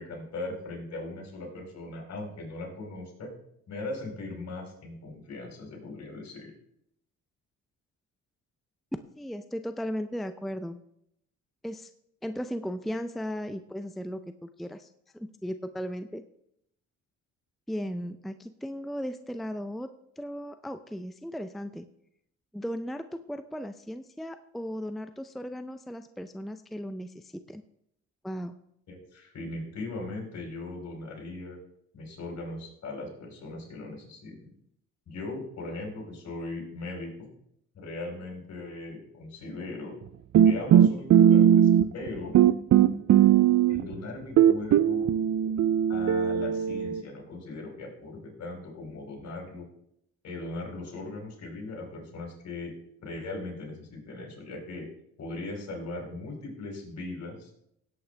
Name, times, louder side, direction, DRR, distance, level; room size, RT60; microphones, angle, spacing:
voice 1, 0.0-3.3 3.7-6.5 28.9-31.6 31.9-34.5 35.1-37.3 37.7-39.9 40.4-42.4 43.7-45.1 45.9-49.7 50.2-52.7 53.0-54.9 55.2-57.5, left 2 dB, 60° left, 0 dB, 4.8 m, -39 dB
voice 2, 9.2-10.8 11.6-11.9 12.2-16.2 17.7-19.9 20.2-21.9 22.5-27.6 28.2-28.5, equal, ahead, 9 dB, 0.5 m, -36 dB
sound 1, 40.3-42.1 42.3-43.9 44.4-47.0, right 10 dB, 55° right, 0.5 m, -19 dB
17.0 x 8.5 x 3.4 m, 0.75 s
cardioid pair, 90°, 30 cm